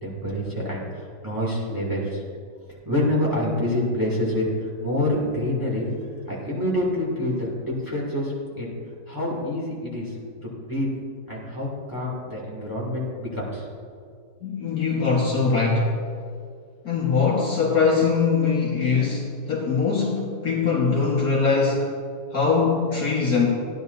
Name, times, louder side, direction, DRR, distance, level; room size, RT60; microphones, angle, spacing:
voice 1, 0.0-2.2 2.9-4.4 4.8-5.9 6.3-8.7 9.1-10.1 10.6-10.9 11.3-13.6, left 1 dB, 10° right, -5 dB, 2.5 m, -27 dB
voice 2, 14.4-16.0 16.8-21.9 22.3-23.5, left 5 dB, 55° left, -4 dB, 1.9 m, -22 dB
15.5 x 10.5 x 2.7 m, 2.2 s
omnidirectional pair, 1.9 m